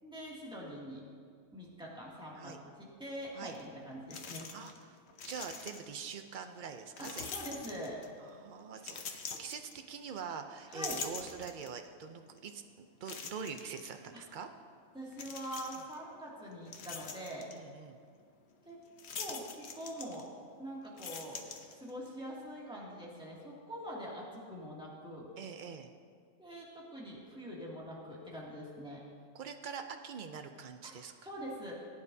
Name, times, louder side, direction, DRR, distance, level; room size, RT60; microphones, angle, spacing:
voice 1, 0.0-1.0 1.5-4.5 7.0-8.0 10.7-11.0 14.1-14.2 14.9-17.5 18.7-18.8 19.1-20.3 20.6-21.4 21.7-25.3 26.4-29.0 30.8-30.9 31.2-31.7, equal, 5° right, -6 dB, 2.3 m, -44 dB
sound 1, 3.5-3.6 4.1-4.8 5.1-6.0 7.0-8.2 8.8-10.2 10.6-11.9 12.4-12.5 13.1-13.9 15.1-16.0 16.4-17.6 19.0-20.5 20.8-22.1, left 5 dB, 55° left, 1.0 m, -44 dB
voice 2, 4.5-5.0 5.3-7.3 8.2-14.5 17.5-18.0 25.4-25.9 29.3-31.1, right 6 dB, 70° right, 6 dB, 0.4 m, -44 dB
19.0 x 9.5 x 2.7 m, 2.1 s
omnidirectional pair, 1.5 m